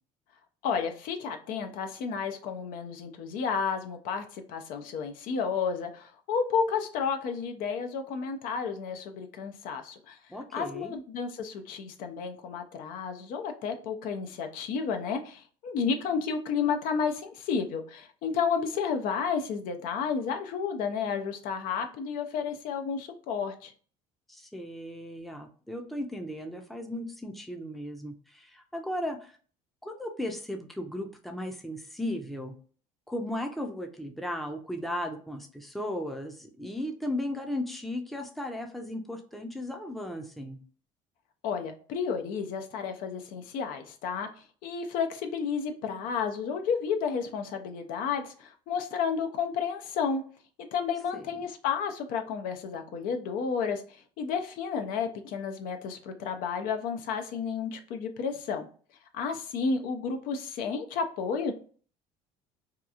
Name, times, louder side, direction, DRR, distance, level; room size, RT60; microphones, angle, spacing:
voice 1, 0.6-10.2 10.5-23.7 41.4-50.2 50.6-58.7 59.1-61.5, left 6 dB, 70° left, 6 dB, 0.5 m, -31 dB
voice 2, 10.3-10.9 24.3-29.4 29.8-32.5 33.1-40.6 51.1-51.3, left 1 dB, ahead, 3 dB, 0.5 m, -36 dB
2.8 x 2.3 x 2.4 m, 0.42 s
supercardioid pair, 100°, 15 cm